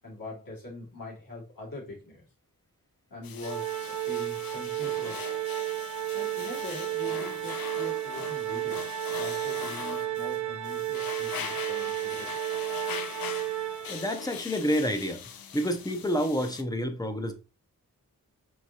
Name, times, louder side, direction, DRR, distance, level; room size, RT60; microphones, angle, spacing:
voice 1, 0.0-2.2 3.1-5.4 6.1-12.7, left 2 dB, 70° left, 2.1 m, -43 dB
sound 1, 3.2-16.6, left 8 dB, 85° left, 0.5 m, -41 dB
Organ, 3.4-14.3, right 13 dB, 60° right, 0.6 m, -33 dB
voice 2, 13.9-15.2 15.5-17.3, equal, 10° left, 0.5 m, -28 dB
4.7 x 3.4 x 2.8 m
wide cardioid pair, 155°, 35 cm